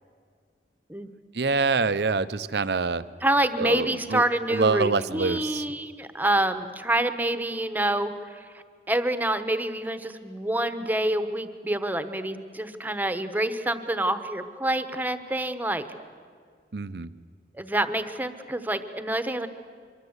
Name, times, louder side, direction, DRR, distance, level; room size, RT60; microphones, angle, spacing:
voice 1, 1.3-3.0 3.6-4.2 4.5-5.7 16.7-17.1, right 4 dB, 65° right, 14 dB, 0.7 m, -26 dB
voice 2, 3.2-15.8 17.5-19.5, right 1 dB, 10° right, 10 dB, 1.0 m, -27 dB
24.5 x 24.0 x 8.1 m, 2.1 s
head